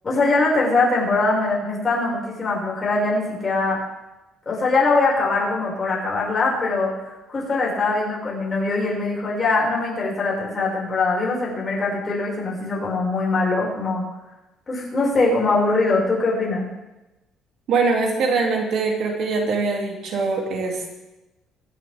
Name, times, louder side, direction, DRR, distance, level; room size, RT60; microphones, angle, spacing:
voice 1, 0.0-3.8 4.5-6.9 7.3-14.0 14.7-16.6, left 3 dB, 25° left, -4 dB, 6.0 m, -22 dB
voice 2, 17.7-21.0, right 4 dB, 65° right, 0 dB, 2.9 m, -23 dB
24.0 x 11.5 x 3.7 m, 1.0 s
cardioid pair, 150°, 0 cm